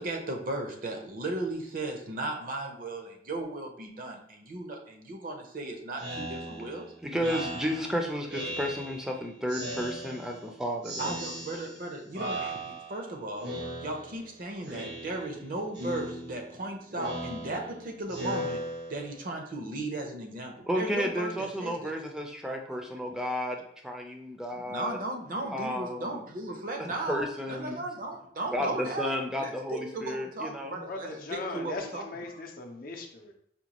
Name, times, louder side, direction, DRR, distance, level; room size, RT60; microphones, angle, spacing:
voice 1, 0.0-6.8 11.0-13.5 13.8-18.6 18.9-21.9 24.7-29.1 29.4-32.0, right 2 dB, 50° right, 3 dB, 0.6 m, -36 dB
Speech synthesizer, 6.0-9.1 9.5-10.5 10.8-11.9 12.1-13.1 13.4-14.3 14.6-15.4 15.7-19.3, right 1 dB, 85° right, 1.1 m, -38 dB
voice 2, 7.0-11.2 20.7-25.0 25.5-26.3 26.8-27.8 28.5-30.8 31.1-31.2, equal, 5° right, 1 dB, 0.5 m, -32 dB
voice 3, 30.9-33.3, left 3 dB, 55° left, 2 dB, 0.6 m, -39 dB
5.1 x 2.2 x 2.9 m, 0.67 s
head